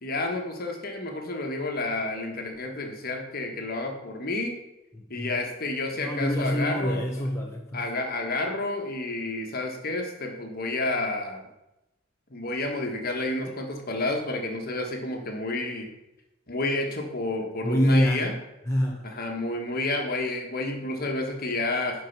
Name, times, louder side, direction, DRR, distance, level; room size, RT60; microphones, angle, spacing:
voice 1, 0.0-4.5 5.1-7.0 7.7-11.4 12.3-15.9 16.5-18.3 19.0-22.0, left 2 dB, 45° left, 3 dB, 1.5 m, -30 dB
voice 2, 4.9-5.3 6.0-7.8 17.6-18.3 18.7-19.1, equal, 15° left, -1 dB, 0.8 m, -25 dB
11.0 x 4.6 x 6.0 m, 0.93 s
head